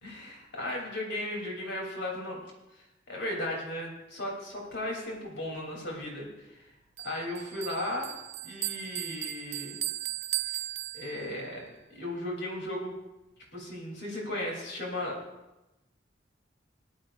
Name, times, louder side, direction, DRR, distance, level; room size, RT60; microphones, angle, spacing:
voice 1, 0.0-2.4 3.1-6.5 7.0-8.1 8.4-9.8 10.9-12.9 13.5-15.2, left 1 dB, 65° left, -1 dB, 3.3 m, -36 dB
Bell, 7.0-11.5, right 16 dB, 35° right, 0.3 m, -36 dB
19.0 x 11.5 x 2.6 m, 0.99 s
head